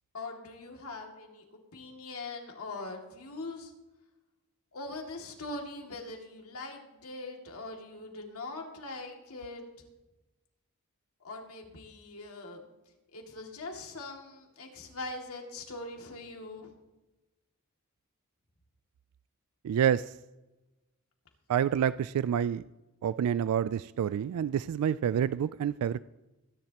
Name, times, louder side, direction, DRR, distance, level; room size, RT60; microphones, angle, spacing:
voice 1, 0.1-3.7 4.7-9.7 11.2-12.7 13.1-16.7, left 2 dB, 80° left, 1 dB, 2.4 m, -42 dB
voice 2, 19.6-20.1 21.5-22.6 23.0-26.0, right 9 dB, 90° right, 16 dB, 0.3 m, -28 dB
22.0 x 10.5 x 2.9 m, 1.1 s
head